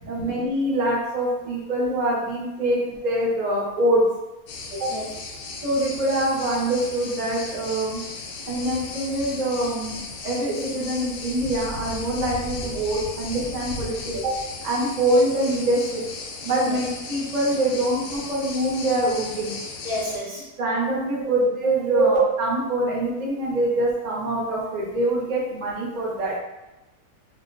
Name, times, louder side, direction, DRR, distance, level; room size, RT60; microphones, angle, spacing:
voice 1, 0.1-4.0 4.7-4.9 5.6-8.0 8.5-14.3 14.6-16.0 16.4-19.6 20.6-26.3, right 1 dB, 50° right, -5 dB, 0.5 m, -24 dB
sound 1, 4.5-20.2, left 3 dB, 70° left, 0.9 m, -36 dB
voice 2, 4.9-5.4 14.2-14.3 16.6-16.8 19.8-20.4 21.9-22.0, right 2 dB, 75° right, -7 dB, 1.7 m, -29 dB
3.6 x 2.2 x 2.5 m, 1.0 s
omnidirectional pair, 1.7 m